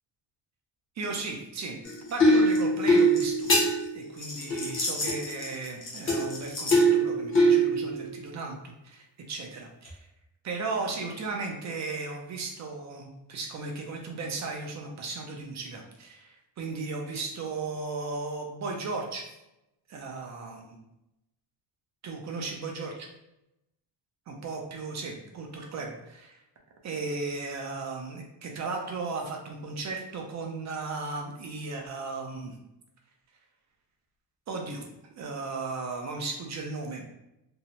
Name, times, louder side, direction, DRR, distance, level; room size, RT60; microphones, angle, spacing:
voice 1, 1.0-1.8 2.1-3.5 3.9-10.0 10.4-19.3 19.9-20.7 22.0-23.1 24.3-26.4 26.8-32.6 34.5-34.8 35.2-37.0, right 3 dB, 40° right, 1 dB, 0.4 m, -36 dB
sound 1, 1.8-8.1 9.8-9.9, right 1 dB, 30° left, 0.6 m, -23 dB
2.7 x 2.0 x 2.8 m, 0.87 s
cardioid pair, 175°, 44 cm